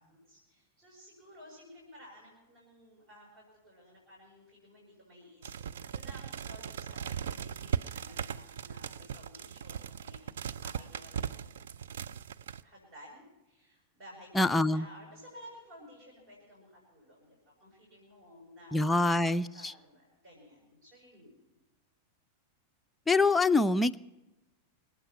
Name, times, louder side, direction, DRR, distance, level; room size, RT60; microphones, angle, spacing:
voice 1, 0.0-11.5 12.6-19.1 19.3-21.6, equal, 40° right, -2 dB, 7.1 m, -54 dB
sound 1, 5.4-12.6, right 8 dB, 60° right, 0.5 m, -38 dB
voice 2, 14.4-14.9 18.7-19.7 23.1-24.0, left 2 dB, 10° left, 8 dB, 0.5 m, -25 dB
25.5 x 8.9 x 5.8 m, 1.0 s
figure-of-eight pair, 90°, 0 cm